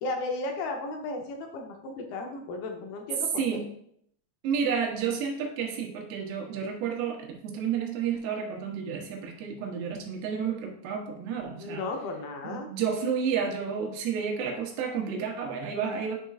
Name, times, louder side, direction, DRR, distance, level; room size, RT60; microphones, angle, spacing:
voice 1, 0.0-3.6 11.6-12.7, left 2 dB, 75° left, 2 dB, 2.3 m, -34 dB
voice 2, 4.4-11.8 12.4-16.2, right 6 dB, 75° right, 1 dB, 2.9 m, -31 dB
9.2 x 5.1 x 2.4 m, 0.67 s
omnidirectional pair, 5.1 m